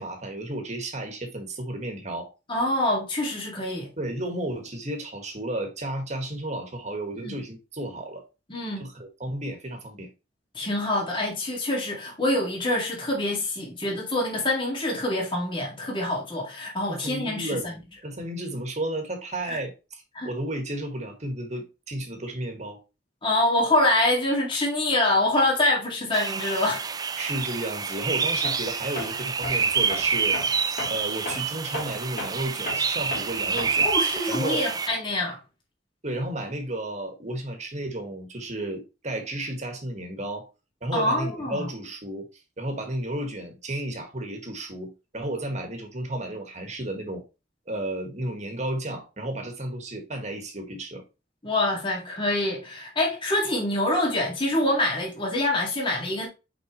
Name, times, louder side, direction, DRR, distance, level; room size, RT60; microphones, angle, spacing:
voice 1, 0.0-2.3 4.0-8.3 8.8-10.1 16.9-22.8 27.2-33.9 34.3-34.6 36.0-40.5 40.8-47.2 47.7-51.0, right 1 dB, 40° right, 1.7 m, -33 dB
voice 2, 2.5-3.9 7.2-7.4 8.5-8.8 10.5-17.6 19.5-19.6 20.1-20.3 23.2-26.9 33.8-35.4 40.9-41.7 51.4-56.3, left 1 dB, 30° left, 2.2 m, -25 dB
sound 1, 26.1-34.9, right 5 dB, 20° right, 0.4 m, -27 dB
Tools, 28.4-28.7 29.0-34.0, left 2 dB, 50° left, 2.6 m, -36 dB
6.0 x 5.2 x 3.1 m
head